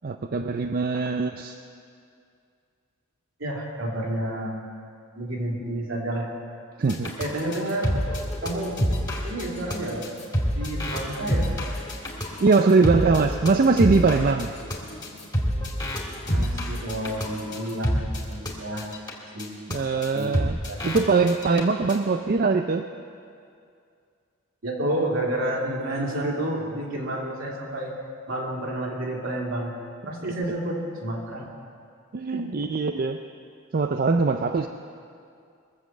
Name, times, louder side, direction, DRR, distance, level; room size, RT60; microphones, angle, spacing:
voice 1, 0.0-1.6 6.8-7.1 12.4-14.5 19.7-22.9 32.1-33.2 33.7-34.7, right 4 dB, 45° right, 6 dB, 0.4 m, -22 dB
voice 2, 3.4-4.6 5.2-6.3 7.2-7.9 8.4-8.8 9.2-10.2 10.5-11.5 16.3-18.9 19.3-19.5 20.1-20.3 20.7-20.8 24.6-27.9 28.3-29.7 30.1-31.5 32.3-32.7, right 1 dB, 70° right, -1 dB, 2.7 m, -30 dB
sound 1, 6.9-18.5 18.8-19.1 19.4-19.5 19.7-19.8 20.0-20.1 20.3-21.0 21.3-21.6 21.9-22.0, equal, 20° left, 2.3 m, -27 dB
22.0 x 7.5 x 7.5 m, 2.4 s
head